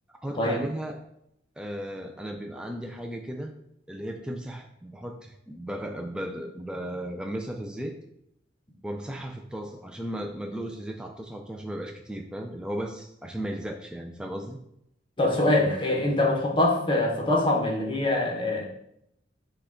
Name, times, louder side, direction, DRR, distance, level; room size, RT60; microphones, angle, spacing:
voice 1, 0.2-1.0 1.6-3.5 3.9-8.0 8.8-14.6, equal, 5° right, 2 dB, 0.3 m, -35 dB
voice 2, 15.2-18.6, left 1 dB, 25° left, 0 dB, 0.8 m, -24 dB
5.8 x 2.3 x 3.7 m, 0.76 s
head